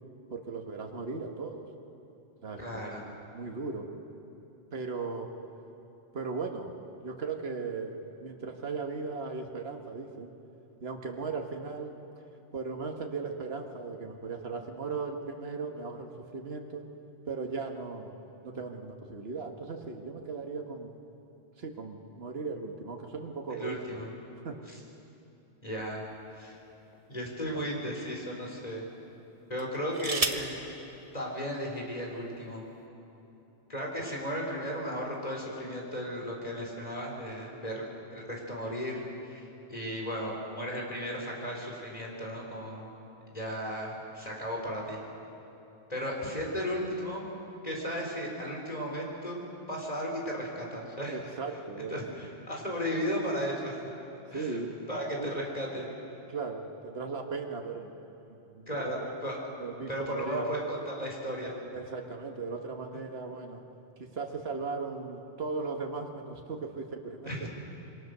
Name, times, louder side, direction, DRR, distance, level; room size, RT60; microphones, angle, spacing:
voice 1, 0.3-1.6 2.4-2.9 3.3-3.9 4.7-5.3 6.1-6.7 7.0-10.3 10.8-11.9 12.5-16.8 17.3-18.1 18.4-20.9 21.6-24.0 24.4-24.6 51.1-52.0 54.3-54.8 55.2-55.3 56.3-57.9 58.5-59.1 59.6-60.5 61.7-63.6 64.0-67.5, right 4 dB, 65° right, 3 dB, 1.7 m, -37 dB
voice 2, 2.6-3.0 23.5-24.1 24.7-24.8 25.6-26.0 26.4-26.6 27.1-28.8 29.5-30.6 31.1-32.6 33.7-37.8 38.1-42.9 43.3-45.0 45.9-47.3 47.6-49.4 49.7-51.2 51.9-53.8 54.3-54.6 54.9-55.9 58.7-59.4 59.9-61.6 67.2-67.5, equal, 35° left, -2 dB, 4.4 m, -35 dB
sound 1, 25.8-27.0 27.7-27.9 29.5-30.6 31.7-31.8 32.1-32.5, right 3 dB, 35° right, 1.3 m, -34 dB
27.0 x 23.5 x 6.8 m, 2.9 s
omnidirectional pair, 1.1 m